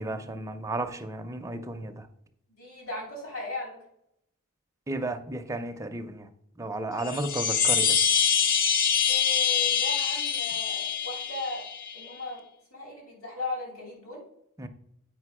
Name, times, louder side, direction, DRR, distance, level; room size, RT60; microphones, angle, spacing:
voice 1, 0.0-2.1 4.9-6.3 6.6-8.0 14.6-14.7, right 2 dB, 15° right, 0.5 m, -33 dB
voice 2, 2.6-3.8 9.1-11.7 11.9-12.4 12.7-14.2, left 2 dB, 65° left, 3.3 m, -37 dB
sound 1, 7.0-12.0, left 7 dB, 40° left, 0.5 m, -25 dB
8.5 x 5.0 x 4.8 m
head